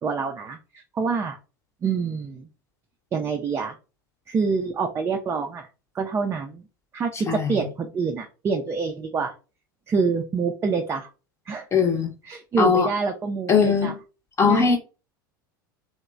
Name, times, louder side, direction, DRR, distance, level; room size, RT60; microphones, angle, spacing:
voice 1, 0.0-1.4 1.8-2.5 3.1-3.8 4.3-5.7 5.9-6.6 6.9-9.3 9.9-11.1 11.5-11.6 12.2-13.9 14.5-14.8, right 5 dB, 25° right, 0.4 m, -26 dB
voice 2, 7.3-7.6 11.7-12.1 12.6-12.9 13.5-14.0 14.4-14.8, left 6 dB, 25° left, 0.7 m, -20 dB
2.9 x 2.1 x 2.3 m
hypercardioid pair, 85°, 11 cm